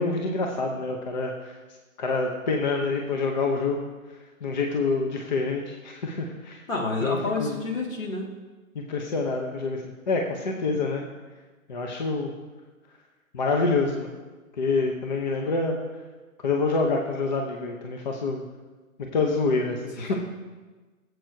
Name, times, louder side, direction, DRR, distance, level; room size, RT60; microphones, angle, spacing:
voice 1, 0.0-1.5 2.0-3.8 4.4-6.6 7.0-7.6 8.7-11.0 11.7-12.3 13.3-14.1 14.6-15.8 16.4-18.4 19.1-20.1, left 3 dB, 30° left, 2 dB, 0.8 m, -26 dB
voice 2, 6.7-8.3 20.1-20.2, left 3 dB, 65° left, 0 dB, 2.3 m, -29 dB
16.5 x 7.8 x 2.7 m, 1.3 s
figure-of-eight pair, 135°, 42 cm